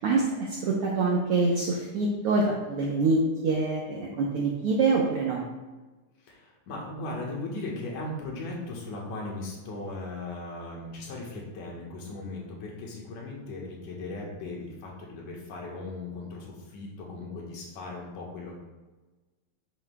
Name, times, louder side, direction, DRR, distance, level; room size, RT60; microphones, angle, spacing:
voice 1, 0.0-5.5, right 3 dB, 75° right, -2 dB, 1.3 m, -25 dB
voice 2, 6.2-18.5, left 2 dB, 80° left, -2 dB, 2.8 m, -38 dB
9.4 x 7.3 x 2.3 m, 1.2 s
omnidirectional pair, 3.6 m